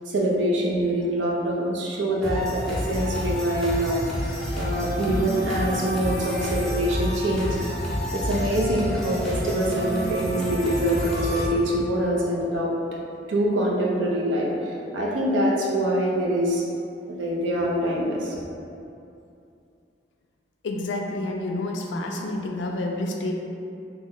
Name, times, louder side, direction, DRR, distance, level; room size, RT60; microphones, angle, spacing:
voice 1, 0.1-7.6 8.1-12.7 13.3-16.6 17.1-18.4, right 1 dB, 90° right, -3 dB, 0.6 m, -25 dB
sound 1, 2.2-11.5, equal, 5° left, 0.5 m, -29 dB
voice 2, 20.6-23.3, left 2 dB, 85° left, 2 dB, 0.4 m, -29 dB
3.0 x 2.1 x 3.6 m, 2.7 s
head